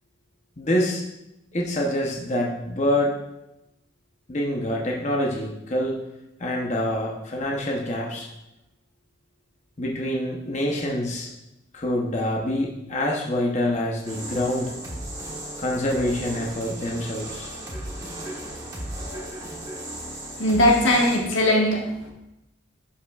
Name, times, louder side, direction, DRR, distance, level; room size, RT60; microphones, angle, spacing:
voice 1, 0.6-1.0 1.5-3.1 4.3-6.0 6.4-8.3 9.8-11.3 11.7-14.7 15.6-17.5, left 1 dB, 35° left, -2 dB, 0.8 m, -26 dB
Rolling Stone, 14.0-21.2, right 1 dB, 20° right, 1.3 m, -35 dB
voice 2, 20.4-22.1, left 1 dB, 90° left, -1 dB, 1.6 m, -20 dB
11.0 x 5.6 x 2.4 m, 0.91 s
head